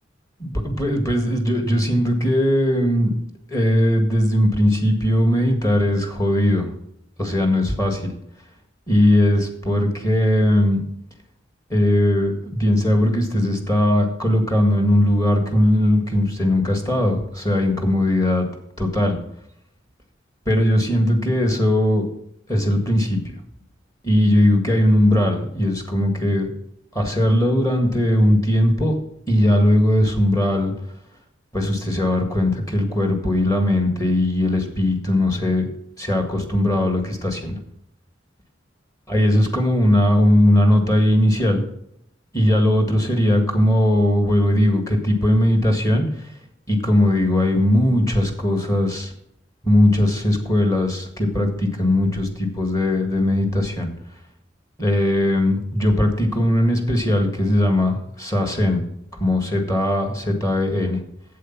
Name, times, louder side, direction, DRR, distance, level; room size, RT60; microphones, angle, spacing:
voice 1, 0.4-3.1 3.5-6.7 7.2-8.1 8.9-10.8 11.7-18.5 18.8-19.2 20.5-22.1 22.5-23.3 24.0-26.5 26.9-29.0 29.3-30.7 31.5-35.7 36.0-37.6 39.1-41.6 42.3-46.3 46.7-49.1 49.6-53.9 54.8-58.8 59.2-61.0, left 1 dB, 20° left, 4 dB, 1.7 m, -19 dB
8.2 x 7.9 x 5.8 m, 0.75 s
head